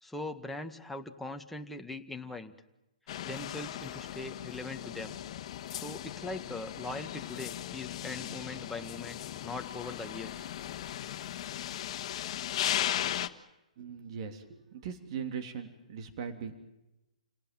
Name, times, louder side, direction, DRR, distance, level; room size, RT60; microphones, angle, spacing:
voice 1, 0.0-2.5 3.2-5.2 5.7-10.5, left 2 dB, 5° left, 4 dB, 1.8 m, -41 dB
sound 1, 3.1-13.3, left 11 dB, 45° left, 1.7 m, -37 dB
voice 2, 13.8-16.6, right 7 dB, 45° right, 7 dB, 3.2 m, -40 dB
30.0 x 18.5 x 9.1 m, 0.96 s
hypercardioid pair, 135°, 4 cm